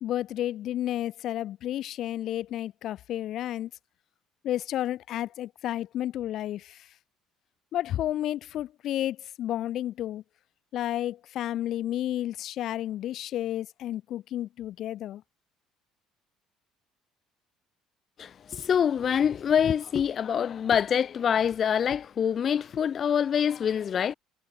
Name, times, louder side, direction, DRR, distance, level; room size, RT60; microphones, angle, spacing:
voice 1, 0.0-3.7 4.4-6.8 7.7-10.2 10.7-15.2, left 12 dB, 60° left, 2.3 m, -31 dB
voice 2, 18.2-24.1, left 8 dB, 40° left, 1.7 m, -25 dB
cardioid pair, 125°, 0 cm